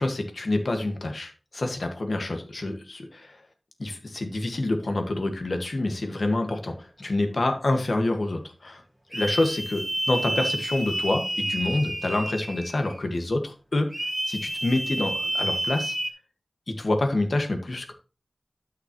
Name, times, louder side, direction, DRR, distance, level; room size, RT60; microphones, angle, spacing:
voice 1, 0.0-3.4 3.8-8.8 9.1-13.9 14.3-15.9 16.7-17.9, left 2 dB, 75° left, 5 dB, 1.7 m, -27 dB
sound 1, 9.1-13.0 13.9-16.1, right 1 dB, 15° right, 1.9 m, -30 dB
12.5 x 5.8 x 3.1 m, 0.33 s
wide cardioid pair, 60°, 0 cm